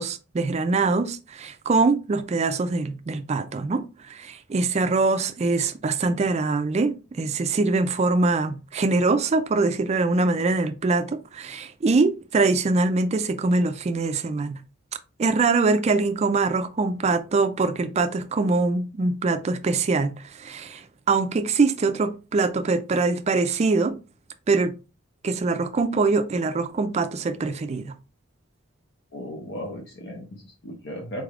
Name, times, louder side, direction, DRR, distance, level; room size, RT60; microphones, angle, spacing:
voice 1, 0.0-14.6 15.2-24.0 24.5-24.8 25.2-27.9, right 3 dB, 35° right, 0.3 m, -23 dB
voice 2, 29.1-31.2, equal, 60° left, 0.7 m, -36 dB
4.0 x 3.3 x 2.4 m
head